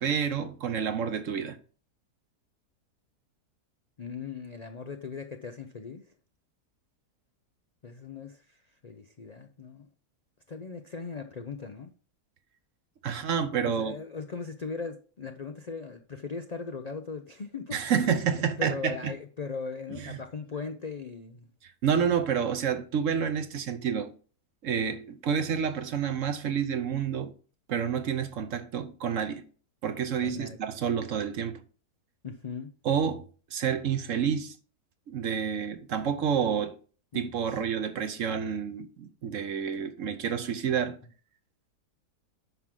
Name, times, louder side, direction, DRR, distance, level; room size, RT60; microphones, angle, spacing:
voice 1, 0.0-1.6 13.0-14.0 17.7-19.1 20.0-20.2 21.8-24.1 24.6-27.3 27.7-29.4 29.8-31.6 32.8-34.5 35.1-36.7 37.1-41.0, right 7 dB, 60° right, 1.1 m, -29 dB
voice 2, 4.0-6.1 7.8-9.9 10.5-11.9 13.6-17.9 18.6-21.5 30.2-30.6 32.2-32.7 37.1-37.6, left 5 dB, 80° left, 0.3 m, -39 dB
9.2 x 6.0 x 3.8 m
omnidirectional pair, 1.7 m